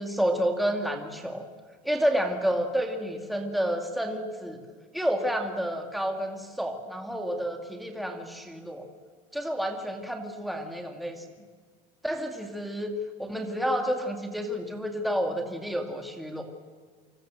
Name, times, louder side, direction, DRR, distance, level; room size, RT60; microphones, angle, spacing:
voice 1, 0.0-1.5 1.8-4.6 4.9-8.9 9.3-11.2 12.0-12.9 13.2-16.4, equal, ahead, 3 dB, 2.2 m, -30 dB
29.0 x 25.5 x 7.6 m, 1.5 s
cardioid pair, 170°, 16 cm